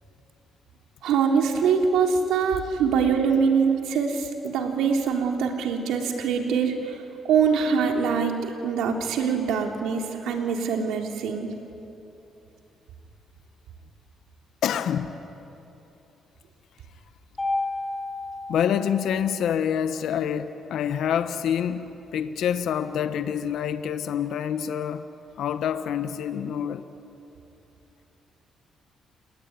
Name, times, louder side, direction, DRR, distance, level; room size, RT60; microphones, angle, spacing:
voice 1, 1.0-8.3 8.6-11.5, right 6 dB, 85° right, 2 dB, 3.5 m, -24 dB
voice 2, 14.6-15.2 18.5-25.1 25.4-26.9, left 8 dB, 75° left, 10 dB, 1.2 m, -27 dB
Mallet percussion, 17.4-19.6, left 2 dB, 20° left, 4.2 m, -32 dB
30.0 x 20.0 x 9.7 m, 3.0 s
cardioid pair, 90°, 0 cm